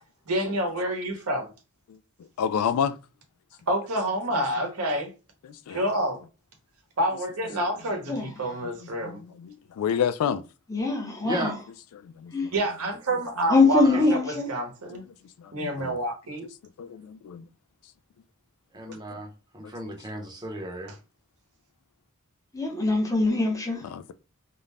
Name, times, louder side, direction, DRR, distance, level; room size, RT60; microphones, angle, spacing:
voice 1, 0.3-1.5 3.7-5.1 5.7-6.2 7.0-9.2 12.5-15.0 15.5-16.5, right 1 dB, 85° right, 0.9 m, -28 dB
voice 2, 2.4-3.0 5.5-5.8 9.0-10.4 12.0-12.3 15.6-16.0 16.8-17.4 23.9-24.1, left 8 dB, 85° left, 0.3 m, -29 dB
voice 3, 10.7-11.5 12.3-12.5 13.5-14.5 22.5-23.8, left 3 dB, 15° left, 0.6 m, -23 dB
voice 4, 18.7-19.3 19.5-20.9, right 1 dB, 20° right, 0.7 m, -34 dB
2.5 x 2.1 x 3.2 m
head